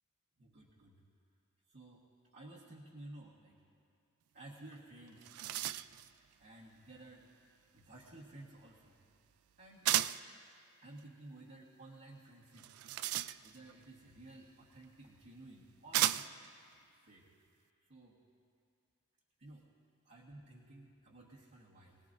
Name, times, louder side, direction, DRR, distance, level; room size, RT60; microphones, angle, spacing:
voice 1, 0.4-1.0 1.7-2.0 2.3-3.5 4.3-5.8 6.4-7.3 7.7-8.9 9.6-9.9 10.8-12.7 13.4-16.3 17.0-17.2 17.9-18.2 19.4-19.6 20.0-22.0, right 2 dB, 50° right, -6 dB, 1.4 m, -54 dB
sound 1, 4.7-4.8 5.1-6.1 9.8-10.3 12.5-13.7 14.8-14.9 15.9-16.5, right 13 dB, 80° right, 0.3 m, -34 dB
24.0 x 18.5 x 2.7 m, 2.4 s
head